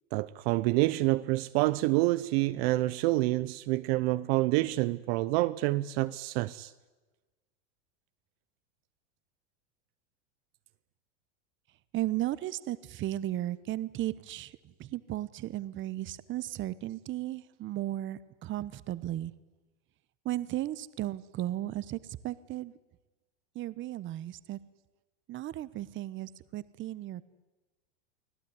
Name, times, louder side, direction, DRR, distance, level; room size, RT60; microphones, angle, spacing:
voice 1, 0.1-6.7, right 19 dB, 55° right, 0.8 m, -27 dB
voice 2, 11.9-19.3 20.2-22.7 23.5-24.6 25.3-27.2, right 14 dB, 35° right, 1.1 m, -35 dB
24.5 x 16.5 x 9.7 m
supercardioid pair, 130°, 36 cm